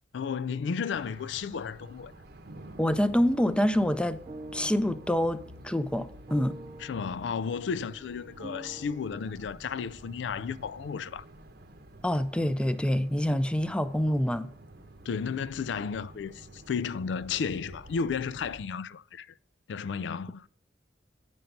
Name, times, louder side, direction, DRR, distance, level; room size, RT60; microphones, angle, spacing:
voice 1, 0.1-2.1 6.8-11.2 15.1-19.3 19.7-20.5, left 6 dB, 80° left, 0.4 m, -33 dB
sound 1, 0.9-18.6, right 1 dB, 60° right, 0.9 m, -50 dB
voice 2, 2.8-4.2 4.5-6.6 12.0-14.5, equal, 5° left, 0.5 m, -26 dB
sound 2, 4.2-9.2, right 2 dB, 30° right, 0.7 m, -47 dB
9.0 x 5.4 x 5.8 m
head